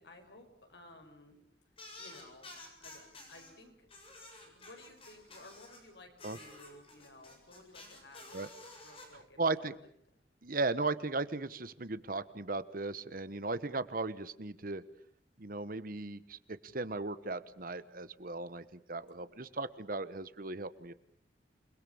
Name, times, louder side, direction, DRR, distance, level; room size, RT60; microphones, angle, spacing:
voice 1, 0.0-1.4 2.0-3.9 4.4-9.7 19.2-19.6, left 2 dB, 75° left, 5 dB, 5.7 m, -56 dB
sound 1, 1.8-3.5 3.9-5.8 6.2-9.1, left 2 dB, 30° left, 7.6 m, -51 dB
voice 2, 9.1-9.7 10.4-14.8 15.4-20.9, right 3 dB, 50° right, 14 dB, 1.2 m, -37 dB
28.5 x 21.0 x 7.1 m, 0.66 s
head